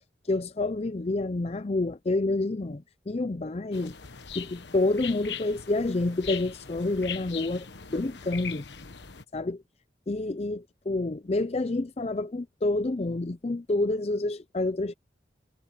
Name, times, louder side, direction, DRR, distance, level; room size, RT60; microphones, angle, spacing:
voice 1, 0.3-3.9 4.4-8.6 9.3-9.6 10.1-14.9, left 2 dB, 35° left, 0.5 m, -28 dB
sound 1, 3.7-9.2, left 7 dB, 75° left, 1.2 m, -40 dB
head